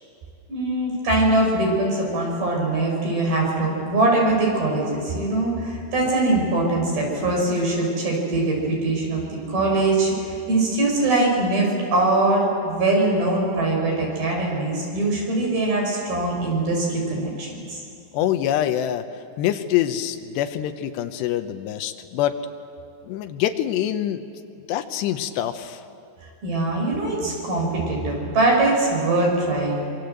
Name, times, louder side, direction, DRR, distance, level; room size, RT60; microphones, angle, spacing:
voice 1, 0.5-17.8 26.4-29.8, right 2 dB, 60° right, -1 dB, 7.5 m, -22 dB
voice 2, 18.1-19.1 19.4-22.4 23.0-24.2 24.7-25.8, left 11 dB, 85° left, 8 dB, 3.1 m, -25 dB
25.0 x 25.0 x 7.9 m, 2.5 s
omnidirectional pair, 4.8 m